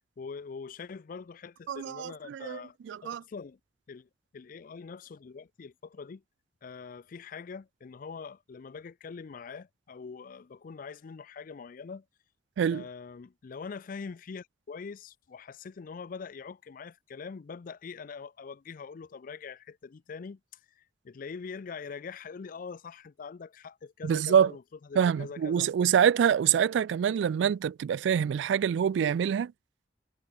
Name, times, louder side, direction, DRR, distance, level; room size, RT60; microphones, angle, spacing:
voice 1, 0.2-2.8 3.0-3.6 3.9-6.2 6.6-12.0 12.7-20.4 20.8-24.6 24.9-25.7 27.0-27.1, left 5 dB, 50° left, 0.4 m, -43 dB
voice 2, 1.7-2.6 2.9-3.2 12.6-12.8 24.0-24.5 25.0-29.5, right 8 dB, 90° right, 0.3 m, -25 dB
head